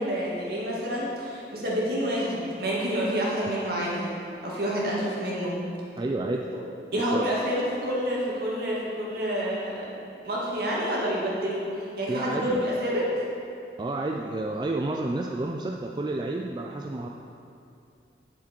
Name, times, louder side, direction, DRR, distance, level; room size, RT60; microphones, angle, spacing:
voice 1, 0.0-5.6 6.9-9.8 10.2-13.0, equal, 60° right, -5 dB, 2.0 m, -28 dB
voice 2, 6.0-6.5 6.9-7.3 12.1-12.7 13.8-17.1, right 2 dB, 25° right, 1 dB, 0.3 m, -30 dB
8.4 x 7.3 x 4.5 m, 2.6 s
head